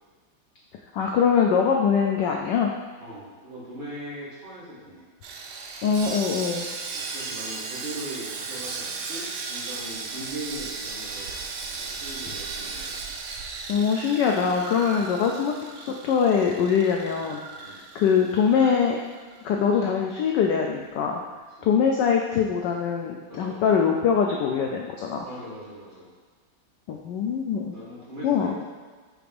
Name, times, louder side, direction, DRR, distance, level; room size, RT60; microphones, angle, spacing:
voice 1, 0.9-2.7 5.8-6.6 13.7-17.4 17.9-19.0 19.4-21.2 21.6-25.3 26.9-27.7 28.2-28.5, left 6 dB, 75° left, 1 dB, 1.0 m, -23 dB
voice 2, 3.0-5.0 6.9-11.4 11.7-12.9 15.1-15.3 17.6-17.8 21.6-21.7 23.2-23.6 25.2-26.1 27.7-28.6, right 1 dB, 25° right, -9 dB, 1.6 m, -40 dB
Sawing, 5.2-19.5 19.7-19.9 20.4-20.5, right 4 dB, 85° right, 1.5 m, -36 dB
4.8 x 3.9 x 5.2 m, 1.5 s
omnidirectional pair, 2.3 m